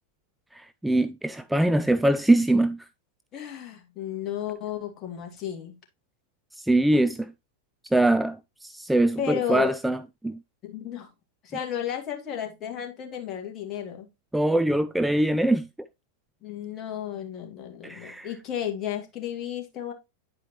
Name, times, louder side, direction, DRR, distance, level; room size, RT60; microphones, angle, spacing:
voice 1, 0.5-2.9 6.6-7.3 7.9-10.4 14.3-15.7 17.8-18.3, right 1 dB, 5° right, 0.3 m, -23 dB
voice 2, 3.3-5.7 9.2-9.8 10.6-11.1 11.4-14.1 16.4-19.9, left 9 dB, 35° left, 2.1 m, -33 dB
9.8 x 4.9 x 3.1 m
hypercardioid pair, 95°, 0 cm